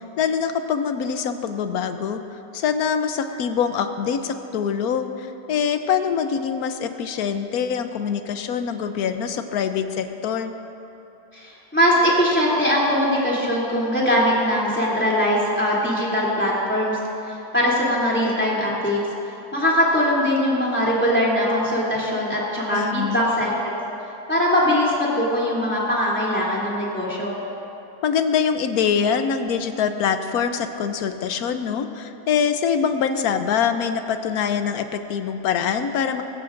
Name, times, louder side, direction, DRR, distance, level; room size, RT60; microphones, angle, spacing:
voice 1, 0.0-2.2 2.5-10.5 22.7-23.3 28.0-36.2, left 7 dB, 70° left, 8 dB, 1.2 m, -24 dB
voice 2, 11.3-17.0 17.5-19.0 19.5-23.5 24.3-27.4, equal, 5° left, -6 dB, 2.9 m, -21 dB
21.0 x 15.5 x 2.6 m, 2.9 s
omnidirectional pair, 1.7 m